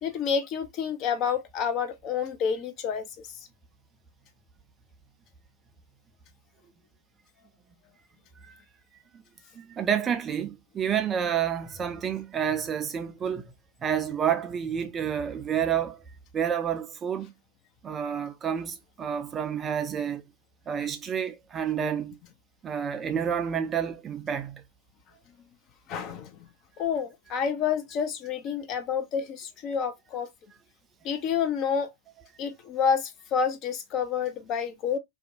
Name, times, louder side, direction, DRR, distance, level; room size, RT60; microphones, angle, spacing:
voice 1, 0.0-3.3 25.9-26.4 26.8-30.3 31.0-31.9 32.4-35.0, left 7 dB, 35° left, 0.5 m, -29 dB
voice 2, 9.5-13.5 13.8-16.0 16.3-17.3 17.8-20.2 20.7-22.2 22.6-24.6, right 8 dB, 20° right, 0.4 m, -29 dB
2.6 x 2.1 x 2.5 m
figure-of-eight pair, 100°, 0 cm